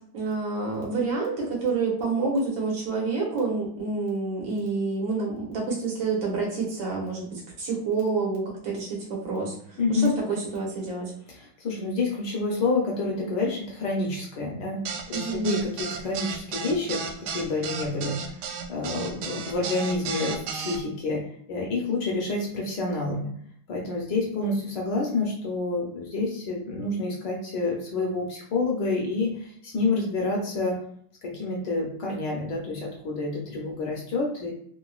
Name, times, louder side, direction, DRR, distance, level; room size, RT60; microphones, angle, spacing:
voice 1, 0.1-11.1 15.1-15.5, right 4 dB, 65° right, -2 dB, 1.7 m, -28 dB
voice 2, 9.8-10.1 11.3-14.8 15.1-18.2 18.7-23.3 23.7-30.8 31.2-34.5, left 3 dB, 65° left, -1 dB, 1.2 m, -28 dB
sound 1, 14.8-20.8, right 5 dB, 85° right, 1.5 m, -33 dB
3.7 x 2.6 x 2.3 m, 0.63 s
omnidirectional pair, 2.3 m